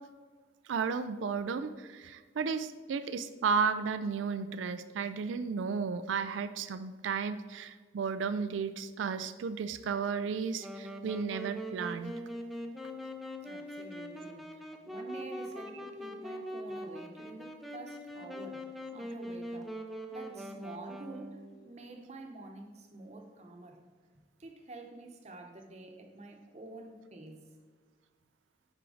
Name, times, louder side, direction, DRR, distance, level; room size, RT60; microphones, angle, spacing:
voice 1, 0.7-12.1, right 5 dB, 80° right, 11 dB, 0.4 m, -33 dB
Wind instrument woodwind instrument, 10.6-21.5, equal, ahead, 0.5 m, -42 dB
voice 2, 13.4-19.7 20.1-23.8 24.4-27.5, right 2 dB, 35° right, 3 dB, 0.9 m, -48 dB
9.8 x 4.5 x 3.9 m, 1.5 s
head